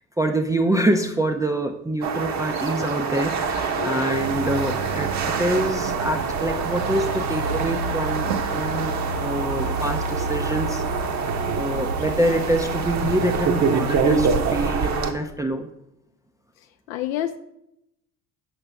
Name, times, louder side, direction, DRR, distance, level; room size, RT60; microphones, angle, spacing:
voice 1, 0.2-10.8 11.6-15.7, right 1 dB, 10° right, 3 dB, 0.4 m, -25 dB
sound 1, 2.0-15.1, right 5 dB, 40° right, 0.9 m, -26 dB
voice 2, 3.8-4.2 16.6-17.4, left 12 dB, 70° left, 8 dB, 0.5 m, -30 dB
sound 2, 4.1-14.7, right 3 dB, 75° right, 0.6 m, -31 dB
5.7 x 5.6 x 3.4 m, 0.81 s
hypercardioid pair, 60°, 42 cm